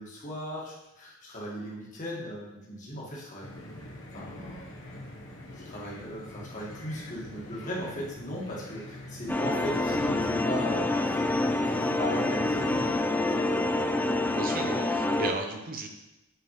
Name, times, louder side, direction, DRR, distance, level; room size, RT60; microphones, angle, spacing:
voice 1, 0.0-3.5 4.1-4.8 5.5-13.7, equal, 35° left, -4 dB, 1.7 m, -38 dB
sound 1, 3.4-12.9, left 1 dB, 65° left, 1.2 m, -43 dB
sound 2, 9.3-15.3, left 2 dB, 10° left, 0.4 m, -27 dB
voice 2, 14.3-15.9, right 3 dB, 40° right, 4 dB, 0.7 m, -35 dB
8.1 x 4.6 x 3.2 m, 0.96 s
head